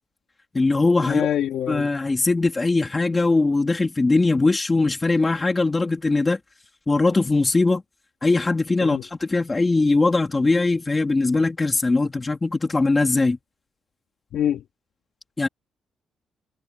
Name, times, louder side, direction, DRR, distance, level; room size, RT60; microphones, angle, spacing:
voice 1, 0.5-1.3 1.7-6.4 6.9-7.8 8.2-13.4 15.4-15.5, left 3 dB, 20° left, 3.5 m, -21 dB
voice 2, 1.1-1.9 8.8-9.0 14.3-14.6, left 10 dB, 75° left, 3.3 m, -25 dB
cardioid pair, 110°, 0 cm